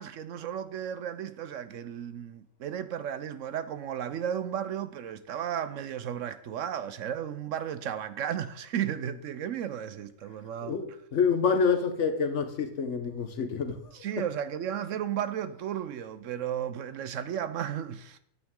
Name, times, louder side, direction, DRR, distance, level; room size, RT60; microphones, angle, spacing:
voice 1, 0.0-10.8 13.9-18.2, right 9 dB, 70° right, 0.9 m, -34 dB
voice 2, 10.6-13.8, left 5 dB, 60° left, 1.1 m, -27 dB
9.3 x 8.9 x 3.7 m
omnidirectional pair, 1.5 m